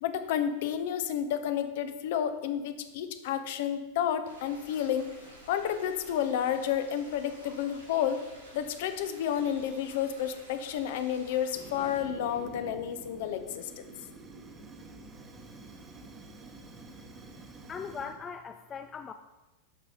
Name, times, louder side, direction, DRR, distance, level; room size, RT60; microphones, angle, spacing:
voice 1, 0.0-5.1 5.5-8.2 8.5-13.8, left 9 dB, 50° left, 9 dB, 0.7 m, -31 dB
sound 1, 4.2-12.0, equal, 90° right, 3.7 m, -52 dB
Fire, 11.5-18.2, right 2 dB, 20° right, 1.1 m, -48 dB
voice 2, 17.7-19.1, left 6 dB, 25° left, 8 dB, 0.4 m, -39 dB
13.0 x 5.4 x 4.4 m, 1.1 s
figure-of-eight pair, 90°, 0 cm